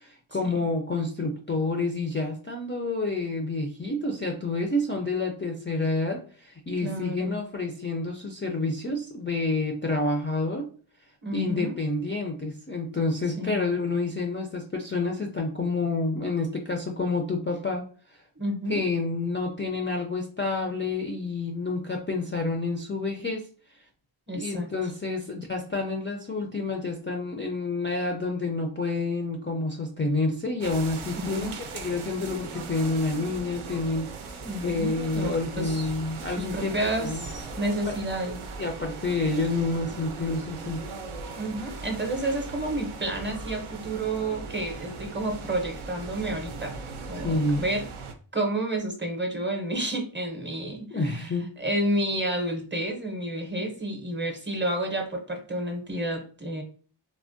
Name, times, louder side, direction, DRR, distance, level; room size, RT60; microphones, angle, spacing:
voice 1, 0.0-10.7 11.3-18.2 18.7-23.5 24.3-36.7 37.0-37.2 37.9-38.0 38.6-40.8 47.1-47.6 50.9-51.5, left 3 dB, 25° left, 1 dB, 0.4 m, -29 dB
voice 2, 6.8-7.4 11.2-11.8 13.4-13.7 18.4-18.8 24.3-24.7 31.1-31.5 34.4-35.9 36.4-38.4 41.3-46.8 47.1-47.9 48.3-56.6, right 1 dB, 25° right, 3 dB, 0.6 m, -30 dB
sound 1, 30.6-48.1, right 4 dB, 80° right, 0.6 m, -39 dB
3.3 x 2.1 x 2.5 m, 0.42 s
wide cardioid pair, 55°, 50 cm